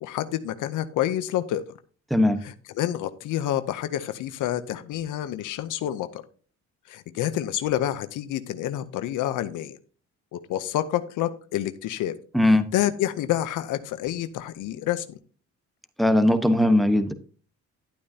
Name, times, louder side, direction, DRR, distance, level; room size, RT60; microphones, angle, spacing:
voice 1, 0.0-1.6 2.4-6.2 6.9-9.8 10.3-12.2 12.7-15.2, left 12 dB, 85° left, 12 dB, 0.7 m, -28 dB
voice 2, 12.3-12.6 16.0-17.1, left 1 dB, ahead, 9 dB, 1.1 m, -19 dB
11.5 x 8.5 x 2.8 m, 0.39 s
cardioid pair, 90°, 30 cm